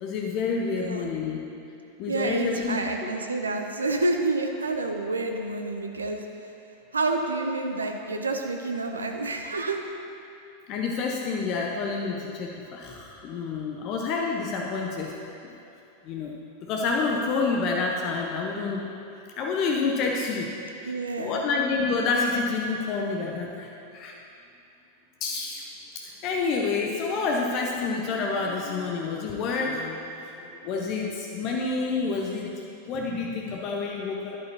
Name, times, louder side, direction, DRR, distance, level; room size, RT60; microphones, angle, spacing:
voice 1, 0.0-1.4 2.0-3.1 10.7-15.1 16.0-16.3 16.7-18.9 19.4-20.5 21.2-24.1 25.2-25.6 25.9-32.5 32.9-34.4, left 4 dB, 40° left, -1 dB, 0.7 m, -28 dB
voice 2, 0.7-1.1 2.1-6.5 6.9-9.9 20.8-21.4, right 2 dB, 75° right, 4 dB, 0.5 m, -29 dB
11.0 x 8.4 x 2.8 m, 2.7 s
figure-of-eight pair, 90°, 0 cm